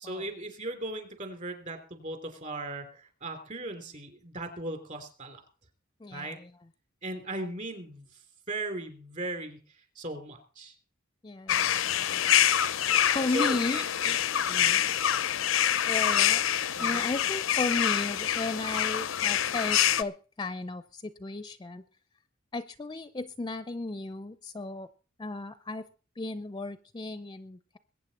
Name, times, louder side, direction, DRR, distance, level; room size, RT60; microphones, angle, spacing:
voice 1, 0.0-5.4 6.1-6.4 7.0-8.1 8.5-9.6 9.9-10.7 13.3-14.1 14.4-14.8 16.7-17.0, right 2 dB, 40° right, 6 dB, 3.2 m, -38 dB
voice 2, 6.0-6.5 11.2-12.3 13.1-13.8 15.9-16.4 16.8-21.8 22.5-24.9 25.2-25.9 26.2-27.8, left 2 dB, 20° left, 13 dB, 0.5 m, -35 dB
sound 1, 11.5-20.0, left 10 dB, 85° left, 0.6 m, -26 dB
22.0 x 8.9 x 4.2 m, 0.38 s
head